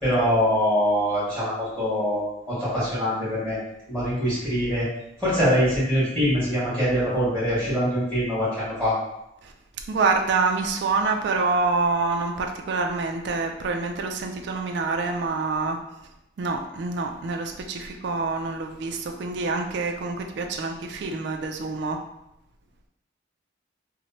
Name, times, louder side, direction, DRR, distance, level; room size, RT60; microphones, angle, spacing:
voice 1, 0.0-3.6 3.9-4.8 5.2-9.0, equal, 5° left, -11 dB, 1.5 m, -23 dB
voice 2, 9.9-15.8 16.4-22.0, right 4 dB, 60° right, 4 dB, 0.3 m, -26 dB
2.9 x 2.1 x 2.8 m, 0.86 s
head